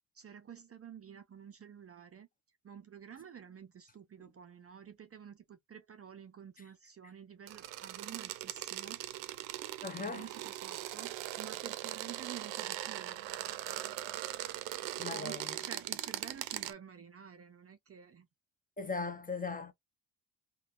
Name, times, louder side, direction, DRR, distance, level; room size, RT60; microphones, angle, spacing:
voice 1, 0.1-2.3 2.6-9.0 10.0-13.2 15.1-18.3, right 8 dB, 30° right, 0.5 m, -50 dB
sound 1, 7.5-16.7, right 14 dB, 75° right, 0.6 m, -40 dB
voice 2, 9.8-10.3 15.0-15.6 18.8-19.7, left 4 dB, 20° left, 0.7 m, -38 dB
3.2 x 2.3 x 2.4 m
supercardioid pair, 70°, 46 cm